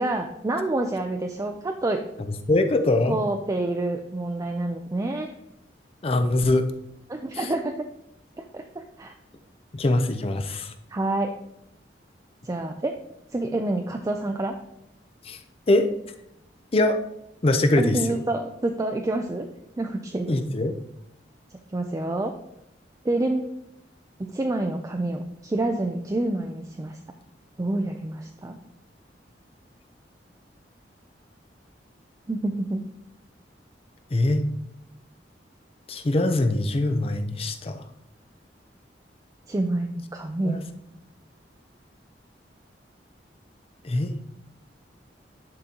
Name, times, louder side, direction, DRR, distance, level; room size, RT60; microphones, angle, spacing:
voice 1, 0.0-2.0 3.1-5.3 7.1-7.8 8.4-8.6 9.0-9.1 10.9-11.4 12.4-13.0 13.3-14.5 17.8-19.5 19.8-20.4 21.7-22.3 23.0-23.5 24.3-27.0 27.6-28.6 32.3-32.9 39.5-40.6, right 2 dB, 20° right, 4 dB, 0.4 m, -27 dB
voice 2, 2.5-3.2 6.0-6.6 9.7-10.7 15.3-15.4 15.7-15.9 16.7-17.0 17.4-18.2 20.3-20.7 34.1-34.4 35.9-37.8 40.4-40.6 43.8-44.1, left 2 dB, 35° left, 8 dB, 0.5 m, -22 dB
10.5 x 3.9 x 2.9 m, 0.80 s
head